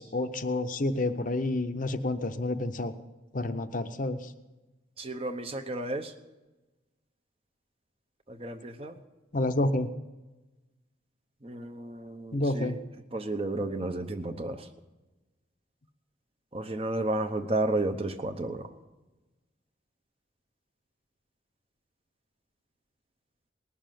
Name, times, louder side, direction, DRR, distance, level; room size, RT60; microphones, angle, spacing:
voice 1, 0.0-2.9 3.3-4.3 9.3-9.9 12.3-12.8, left 2 dB, 45° left, 9 dB, 0.7 m, -29 dB
voice 2, 5.0-6.1 8.3-8.9 11.4-12.7 13.1-14.7 16.5-18.7, right 2 dB, 30° right, 7 dB, 0.8 m, -32 dB
19.0 x 7.0 x 9.2 m, 1.1 s
head